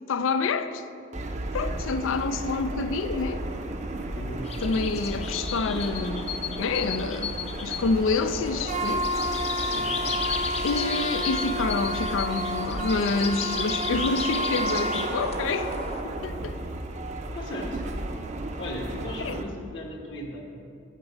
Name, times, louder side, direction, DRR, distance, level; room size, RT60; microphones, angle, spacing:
voice 1, 0.1-0.8 1.5-3.4 4.6-6.3 6.6-7.4 7.6-9.1 9.5-9.7 10.6-15.7 16.0-16.6 19.2-19.4, left 4 dB, 90° left, 0.4 m, -28 dB
sound 1, 1.1-19.4, right 1 dB, 35° right, 0.5 m, -31 dB
sound 2, 4.4-16.0, left 6 dB, 30° left, 0.5 m, -35 dB
voice 2, 17.3-17.8 18.6-20.4, left 1 dB, 65° left, 1.2 m, -36 dB
9.1 x 4.9 x 6.2 m
head